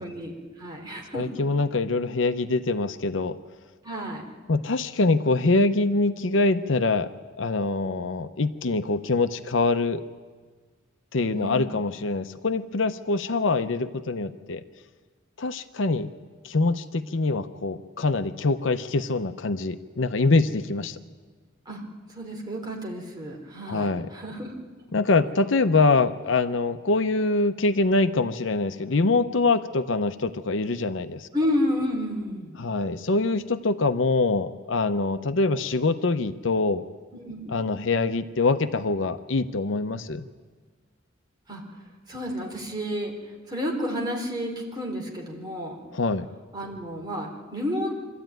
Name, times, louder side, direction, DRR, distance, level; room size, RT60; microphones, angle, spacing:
voice 1, 0.0-1.4 3.8-4.2 11.4-11.7 21.7-21.8 22.1-24.5 31.3-32.6 37.2-37.6 41.5-41.6 42.1-43.1 43.5-45.7 46.5-48.0, equal, 20° right, -1 dB, 3.5 m, -31 dB
voice 2, 1.1-3.4 4.5-7.1 7.4-10.0 11.1-14.6 15.4-16.1 16.4-21.0 23.7-24.1 24.9-31.3 32.6-36.8 37.5-40.3 45.9-46.3, left 3 dB, 70° left, 10 dB, 0.7 m, -24 dB
24.5 x 13.5 x 9.1 m, 1.5 s
head